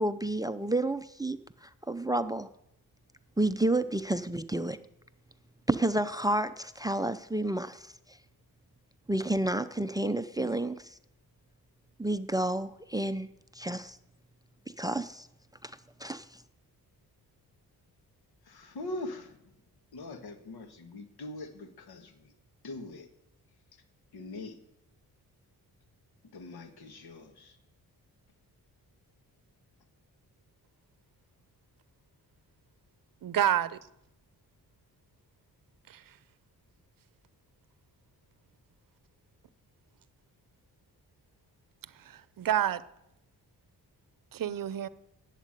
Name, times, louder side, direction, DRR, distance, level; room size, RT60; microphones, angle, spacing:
voice 1, 0.0-2.5 3.4-4.8 5.7-8.2 9.1-11.0 12.0-13.3 13.5-14.0 14.8-15.3 15.6-16.4, right 1 dB, 10° right, 13 dB, 0.5 m, -30 dB
voice 2, 18.5-19.4 19.9-22.1 22.6-23.1 24.1-24.6 26.3-27.5, left 2 dB, 75° left, 7 dB, 1.7 m, -42 dB
voice 3, 33.2-33.7 35.9-36.0 42.1-42.8 44.3-44.9, right 10 dB, 60° right, 16 dB, 0.7 m, -28 dB
11.5 x 8.2 x 9.1 m, 0.82 s
cardioid pair, 95°, 38 cm